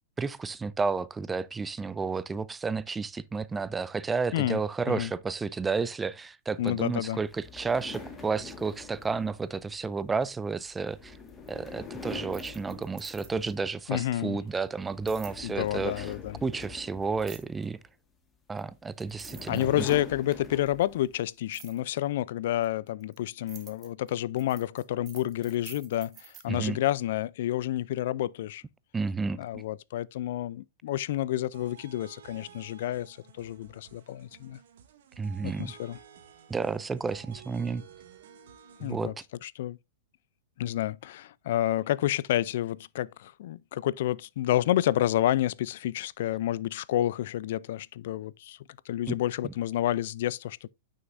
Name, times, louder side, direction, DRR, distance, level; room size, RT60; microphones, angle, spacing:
voice 1, 0.2-11.2 11.5-16.1 16.4-17.8 18.5-19.8 26.5-26.8 28.9-29.6 35.2-35.7 36.5-37.8 38.8-39.1 49.1-49.2 49.4-49.5, right 4 dB, 10° right, 0.4 m, -31 dB
voice 2, 6.6-7.2 13.9-14.4 15.4-16.4 19.5-28.6 29.4-34.6 35.4-36.0 38.8-39.1 39.4-39.8 40.6-48.6 48.9-50.7, left 13 dB, 65° left, 0.4 m, -29 dB
sound 1, 7.3-13.8 14.2-14.5 14.9-17.9 18.7-21.2, left 4 dB, 15° left, 1.6 m, -45 dB
sound 2, 12.2-13.5 15.1-15.4 17.2-17.6 18.6-18.7 19.0-20.1 21.5-21.8 22.6-26.4, right 9 dB, 25° right, 1.7 m, -49 dB
sound 3, 31.5-38.9, right 7 dB, 70° right, 1.8 m, -53 dB
9.2 x 6.4 x 2.5 m
hypercardioid pair, 145°, 0 cm